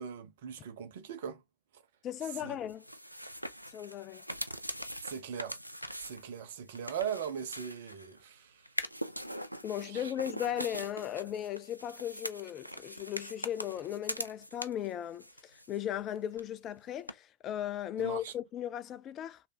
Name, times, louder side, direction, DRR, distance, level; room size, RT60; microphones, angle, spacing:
voice 1, 0.0-1.4 2.4-2.6 5.0-5.6 6.0-8.7 9.8-10.1 18.0-18.3, right 8 dB, 55° right, 0.7 m, -40 dB
voice 2, 2.0-2.8 3.7-4.2 9.6-19.4, left 11 dB, 30° left, 0.3 m, -37 dB
sound 1, 2.7-8.2 8.6-14.9 15.2-16.1 16.3-16.4 17.1-17.2, equal, 90° right, 0.3 m, -42 dB
3.2 x 2.5 x 3.6 m
figure-of-eight pair, 90°, 0 cm